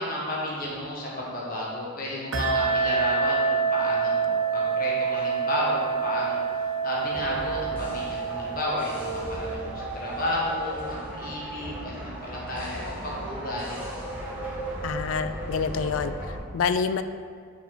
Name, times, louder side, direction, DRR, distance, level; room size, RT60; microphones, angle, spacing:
voice 1, 0.0-6.4 6.8-13.8, left 1 dB, 40° left, -5 dB, 1.4 m, -32 dB
sound 1, 2.3-10.5, right 5 dB, 70° right, 0.7 m, -27 dB
sound 2, 7.1-16.4, right 1 dB, 10° right, 1.3 m, -36 dB
voice 2, 14.8-17.0, left 6 dB, 70° left, 11 dB, 0.3 m, -27 dB
7.2 x 4.6 x 3.9 m, 2.1 s
head